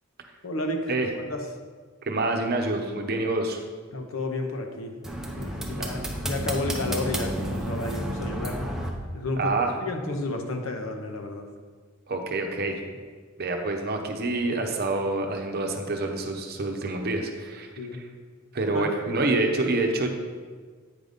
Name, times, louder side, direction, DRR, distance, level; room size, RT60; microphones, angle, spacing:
voice 1, 0.4-1.4 3.9-4.9 5.4-8.6 9.1-11.5 17.8-18.0 18.7-18.9, left 2 dB, 85° left, 4 dB, 0.9 m, -32 dB
voice 2, 2.0-3.6 5.8-5.9 9.4-9.7 12.1-12.8 13.4-17.7 18.5-20.2, right 2 dB, 50° right, 3 dB, 0.8 m, -27 dB
sound 1, 5.0-8.9, equal, ahead, 0.7 m, -31 dB
8.9 x 4.0 x 5.1 m, 1.5 s
head